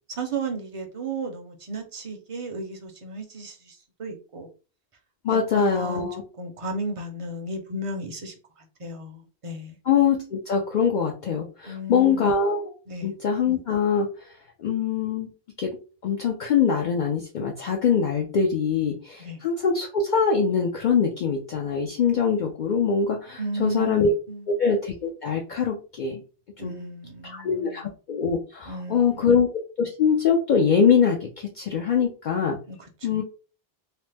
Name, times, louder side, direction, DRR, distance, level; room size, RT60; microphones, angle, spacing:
voice 1, 0.1-4.5 5.3-6.1 6.4-9.8 11.7-12.4 12.9-13.1 19.2-19.4 23.4-24.6 26.6-27.8 28.7-29.4 32.7-33.2, right 2 dB, 40° right, 0.5 m, -34 dB
voice 2, 5.2-6.2 9.9-12.7 13.0-14.1 14.6-15.3 15.6-15.8 16.0-24.1 24.5-26.2 26.6-26.7 27.4-29.5 29.8-32.6 33.0-33.2, left 6 dB, 60° left, 0.6 m, -23 dB
2.9 x 2.0 x 3.2 m
omnidirectional pair, 1.0 m